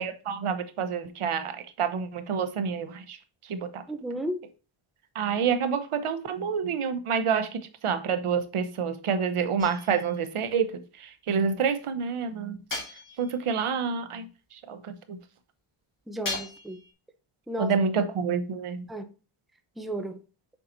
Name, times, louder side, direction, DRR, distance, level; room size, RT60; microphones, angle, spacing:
voice 1, 0.0-3.2 3.5-3.8 5.1-10.7 11.0-12.6 13.2-15.2 17.6-18.8, right 6 dB, 85° right, 1.0 m, -28 dB
voice 2, 3.9-4.4 16.1-16.8 17.5-17.7 18.9-19.0 19.8-20.2, right 1 dB, ahead, 0.7 m, -33 dB
sound 1, 9.6-10.2 12.7-13.5 16.2-16.9, left 3 dB, 40° left, 2.0 m, -37 dB
7.1 x 5.5 x 2.7 m
wide cardioid pair, 155°, 50 cm